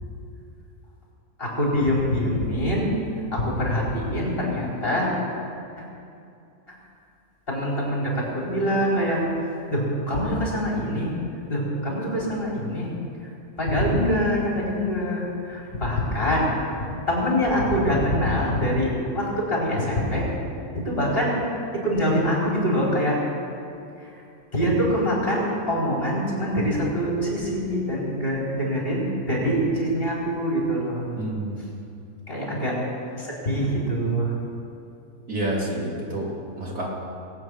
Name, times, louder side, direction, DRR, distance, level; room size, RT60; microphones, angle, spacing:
voice 1, 1.4-2.9 3.3-5.1 7.5-9.2 9.7-11.1 11.5-12.9 13.2-13.3 13.6-16.8 17.1-20.3 20.8-21.3 21.7-23.2 24.0-24.2 24.5-31.1 32.3-32.8 33.2-34.3, equal, 40° left, -4 dB, 4.3 m, -24 dB
voice 2, 31.2-31.6 35.3-36.3 36.6-36.9, right 1 dB, 75° right, -4 dB, 3.4 m, -28 dB
21.0 x 8.6 x 6.3 m, 2.6 s
omnidirectional pair, 1.6 m